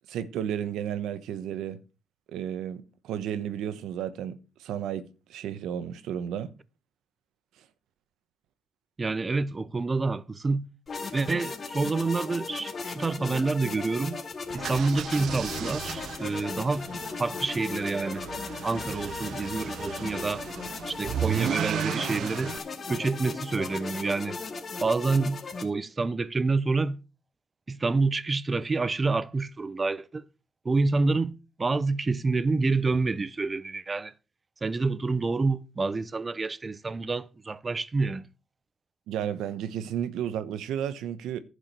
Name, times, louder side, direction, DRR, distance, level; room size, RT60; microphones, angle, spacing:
voice 1, 0.1-1.8 2.3-6.5 39.1-41.4, right 9 dB, 85° right, 1.1 m, -33 dB
voice 2, 9.0-10.7 11.1-14.2 14.5-18.2 18.6-20.4 20.9-22.6 22.9-24.4 24.8-27.0 27.7-30.3 30.6-34.1 34.6-38.3, right 3 dB, 30° right, 0.7 m, -28 dB
sound 1, 10.9-25.6, left 4 dB, 40° left, 2.5 m, -37 dB
sound 2, 14.5-22.6, right 9 dB, 70° right, 0.6 m, -35 dB
11.0 x 5.0 x 7.5 m
cardioid pair, 90°, 0 cm